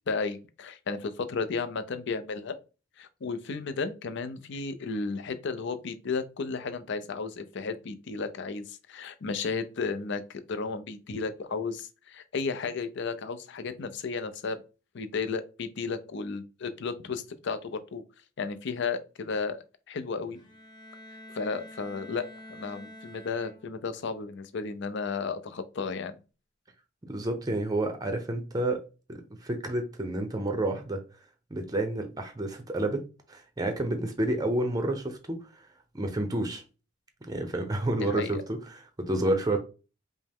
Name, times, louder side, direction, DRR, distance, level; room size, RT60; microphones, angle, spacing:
voice 1, 0.1-2.6 3.0-14.6 14.9-18.0 18.4-20.4 21.3-26.1 38.0-38.4, left 4 dB, 60° left, 0.5 m, -33 dB
Bowed string instrument, 20.3-24.0, left 1 dB, 20° left, 0.9 m, -48 dB
voice 2, 27.0-28.8 29.1-31.0 31.5-33.0 33.3-35.7 35.9-36.6 37.3-39.6, right 1 dB, 20° right, 0.6 m, -30 dB
5.2 x 2.1 x 3.5 m
head